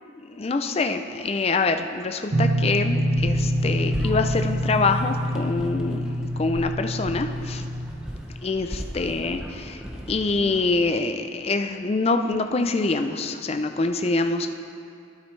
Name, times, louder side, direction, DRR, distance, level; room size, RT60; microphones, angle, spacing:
voice 1, 0.2-7.7 8.4-9.8 10.1-14.5, left 3 dB, 30° left, 7 dB, 0.4 m, -25 dB
sound 1, 2.3-7.9, equal, 50° right, 0.9 m, -25 dB
sound 2, 3.1-10.9, equal, 5° right, 0.8 m, -37 dB
12.0 x 9.3 x 3.2 m, 2.5 s
head